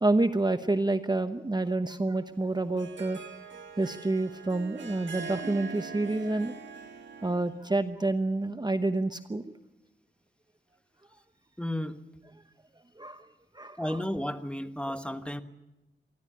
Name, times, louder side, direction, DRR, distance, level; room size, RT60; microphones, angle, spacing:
voice 1, 0.0-3.2 3.8-6.5 7.2-9.4 13.0-13.3 13.5-13.8, right 2 dB, 25° right, 10 dB, 0.9 m, -28 dB
Harp, 2.4-7.7, right 5 dB, 90° right, 1.9 m, -43 dB
voice 2, 11.6-12.0 13.8-15.4, left 1 dB, 5° left, 9 dB, 1.3 m, -33 dB
24.0 x 15.0 x 9.9 m, 1.0 s
wide cardioid pair, 75°, 19 cm